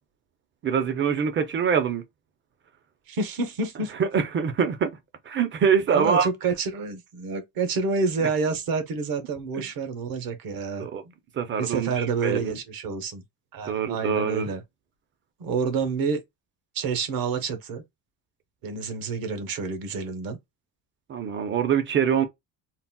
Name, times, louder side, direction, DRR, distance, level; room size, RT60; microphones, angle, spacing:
voice 1, 0.6-2.0 4.0-4.9 5.3-6.3 9.6-9.7 10.8-11.0 11.3-12.6 13.7-14.5 21.1-22.2, right 7 dB, 30° right, 0.5 m, -24 dB
voice 2, 3.1-3.9 5.9-10.9 11.6-13.2 13.5-14.6 15.4-16.2 16.7-17.8 18.6-20.4, right 4 dB, 55° right, 0.9 m, -28 dB
3.9 x 2.0 x 2.2 m
cardioid pair, 140°, 43 cm